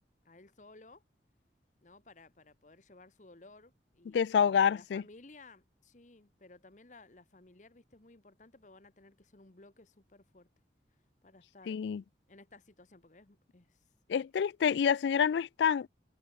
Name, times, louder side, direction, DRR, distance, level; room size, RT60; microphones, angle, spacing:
voice 1, 0.2-1.0 1.8-4.2 4.5-10.5 11.2-11.8 12.3-13.8, left 2 dB, 45° left, 1.3 m, -57 dB
voice 2, 4.1-5.0 11.7-12.0 14.1-15.9, left 7 dB, 80° left, 0.3 m, -27 dB
head